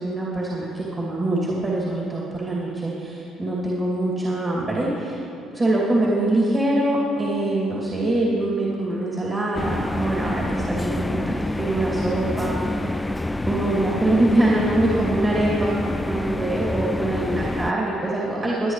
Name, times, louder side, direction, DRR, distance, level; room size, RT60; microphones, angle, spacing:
voice 1, 0.0-5.2 5.5-12.9 13.5-18.7, right 1 dB, 30° right, -5 dB, 2.6 m, -24 dB
sound 1, 9.5-17.7, left 1 dB, 15° left, 0.3 m, -27 dB
24.0 x 8.6 x 3.3 m, 2.8 s
supercardioid pair, 70°, 0 cm